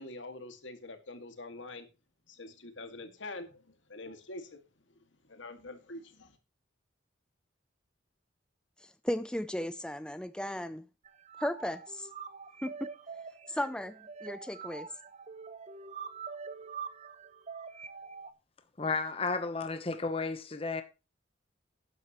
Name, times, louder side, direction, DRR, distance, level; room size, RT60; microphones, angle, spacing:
voice 1, 0.0-1.9 2.3-4.6 4.9-6.4, left 2 dB, 75° left, 2.2 m, -45 dB
voice 2, 8.8-10.8 11.4-12.1 12.6-12.9 13.5-13.9 14.2-14.9, left 1 dB, 5° left, 0.4 m, -35 dB
sound 1, 11.1-18.3, right 5 dB, 35° right, 0.8 m, -45 dB
voice 3, 18.8-20.8, left 4 dB, 30° left, 0.9 m, -33 dB
12.5 x 10.5 x 3.1 m
head